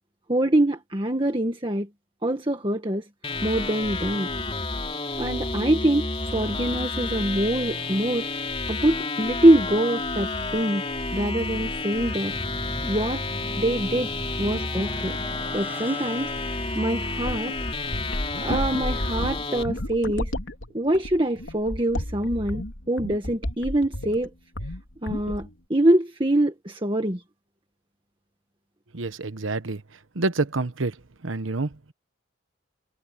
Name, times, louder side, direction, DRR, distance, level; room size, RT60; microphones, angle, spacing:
voice 1, 0.3-1.9 2.2-3.0 3.4-4.3 5.2-8.3 8.7-10.8 11.1-12.3 12.8-13.2 13.5-14.1 14.4-15.2 15.5-16.3 16.7-17.6 18.3-20.3 20.7-24.3 25.0-27.2, right 1 dB, 25° right, 1.7 m, -24 dB
sound 1, 3.2-19.6, left 3 dB, 30° left, 3.2 m, -30 dB
sound 2, 11.8-17.2, equal, 10° right, 5.5 m, -42 dB
sound 3, 17.1-24.3 24.6-24.8 25.1-25.5, left 1 dB, 85° left, 3.1 m, -32 dB
voice 2, 28.9-29.8 30.1-31.0 31.2-31.9, right 3 dB, 90° right, 1.1 m, -28 dB
head